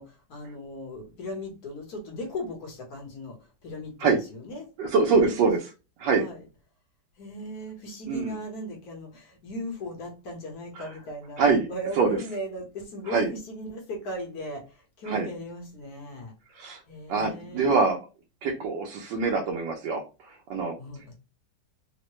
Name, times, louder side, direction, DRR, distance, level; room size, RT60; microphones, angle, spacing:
voice 1, 0.0-4.7 5.1-5.3 6.1-6.5 7.2-16.3 16.8-18.0 20.8-21.2, equal, 60° left, 1 dB, 1.4 m, -37 dB
voice 2, 4.8-5.6 6.0-6.3 8.1-8.3 11.4-11.7 12.0-12.1 13.1-13.3 15.1-15.3 16.6-16.8 17.1-18.0 18.4-20.7, right 4 dB, 85° right, 0 dB, 1.3 m, -24 dB
3.6 x 2.1 x 3.0 m, 0.30 s
omnidirectional pair, 1.9 m